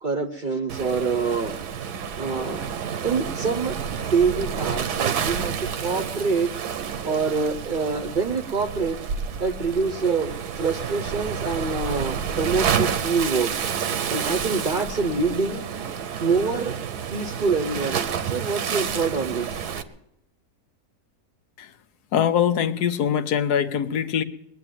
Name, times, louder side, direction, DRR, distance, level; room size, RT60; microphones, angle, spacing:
voice 1, 0.0-1.6 2.2-2.6 3.0-6.5 7.0-9.0 9.4-15.6 16.2-16.8 17.1-19.6, right 4 dB, 40° right, 8 dB, 0.7 m, -26 dB
Waves surf, 0.7-19.8, right 7 dB, 85° right, 1.4 m, -29 dB
voice 2, 22.1-24.2, left 8 dB, 85° left, 11 dB, 1.3 m, -23 dB
20.5 x 7.7 x 9.1 m, 0.86 s
omnidirectional pair, 1.7 m